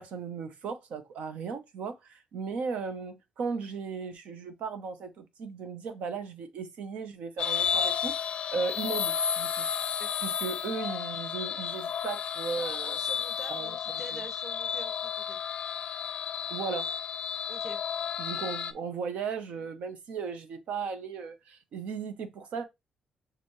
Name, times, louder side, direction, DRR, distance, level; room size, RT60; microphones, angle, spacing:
voice 1, 0.0-9.7 10.2-13.0 13.5-13.7 14.1-14.2 16.5-16.9 18.2-22.7, right 5 dB, 70° right, 0.9 m, -36 dB
sound 1, 7.4-18.7, left 7 dB, 50° left, 0.5 m, -32 dB
voice 2, 12.6-15.4 17.5-17.8, right 1 dB, 25° right, 1.8 m, -46 dB
6.8 x 2.4 x 3.2 m
cardioid pair, 135°, 2 cm